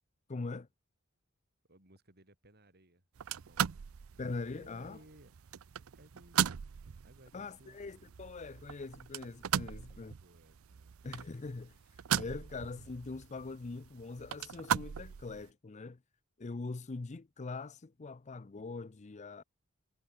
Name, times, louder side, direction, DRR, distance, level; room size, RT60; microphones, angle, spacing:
voice 1, 0.3-0.7 4.2-5.0 7.3-10.1 11.0-11.7 12.1-16.0 16.4-19.4, left 3 dB, 35° left, 0.6 m, -42 dB
voice 2, 1.7-3.8 4.5-5.3 5.9-8.2 9.7-11.0 12.2-12.6, right 1 dB, 50° right, 6.9 m, -61 dB
sound 1, 3.2-15.5, right 9 dB, 85° right, 0.5 m, -38 dB
head